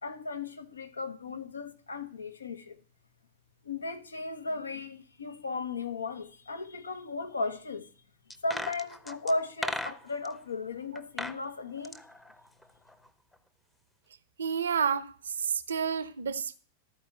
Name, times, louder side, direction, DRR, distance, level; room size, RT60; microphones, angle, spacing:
voice 1, 0.0-2.8 3.6-7.9 8.4-12.0, left 3 dB, 75° left, 1.0 m, -36 dB
sound 1, 8.3-10.3 11.0-11.4 11.7-13.1 13.3-13.4, left 1 dB, 5° left, 0.8 m, -37 dB
voice 2, 14.4-16.6, right 6 dB, 70° right, 0.7 m, -30 dB
13.0 x 4.8 x 7.8 m
figure-of-eight pair, 90°, 0 cm